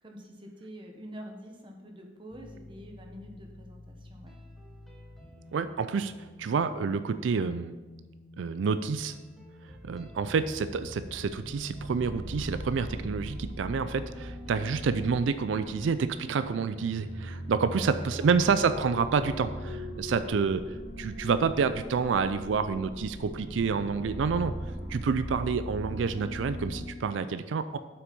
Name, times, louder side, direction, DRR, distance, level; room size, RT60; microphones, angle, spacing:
voice 1, 0.0-4.4 17.8-18.3, equal, 25° right, 1 dB, 1.2 m, -46 dB
sound 1, 2.3-16.3, left 1 dB, ahead, 1.1 m, -50 dB
voice 2, 5.5-7.8 8.4-9.2 9.8-24.5 24.9-27.8, right 5 dB, 90° right, 12 dB, 0.4 m, -28 dB
sound 2, 10.1-26.9, equal, 55° left, 2.0 m, -40 dB
7.9 x 6.0 x 5.3 m, 1.2 s
head